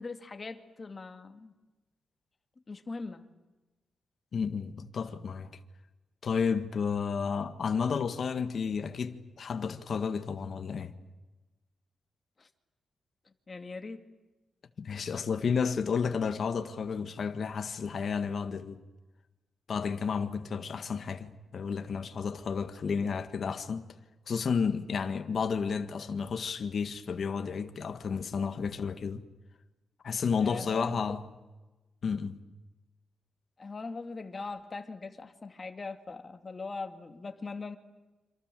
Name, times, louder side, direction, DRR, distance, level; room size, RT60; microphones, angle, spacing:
voice 1, 0.0-1.5 2.7-3.2 12.4-12.5 13.3-14.0 30.4-31.2 33.6-37.8, left 3 dB, 30° left, 2.1 m, -41 dB
voice 2, 4.3-5.5 6.2-10.9 14.8-18.8 19.7-23.9 24.3-29.2 30.0-31.2 32.0-32.4, left 6 dB, 50° left, 1.8 m, -32 dB
28.0 x 27.0 x 7.7 m
wide cardioid pair, 145°, 0 cm